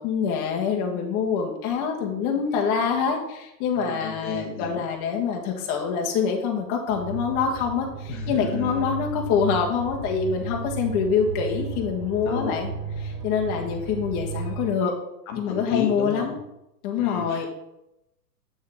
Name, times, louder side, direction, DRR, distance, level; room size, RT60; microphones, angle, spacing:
voice 1, 0.0-12.7 13.0-14.9 15.4-16.3 16.8-17.5, left 6 dB, 35° left, 0 dB, 1.6 m, -25 dB
voice 2, 3.7-4.8 8.1-8.9 12.2-12.6 15.3-16.4 17.0-17.5, left 6 dB, 55° left, 2 dB, 1.5 m, -32 dB
sound 1, 6.9-14.7, right 4 dB, 75° right, 2.4 m, -34 dB
7.9 x 6.4 x 3.6 m, 0.86 s
hypercardioid pair, 115°, 48 cm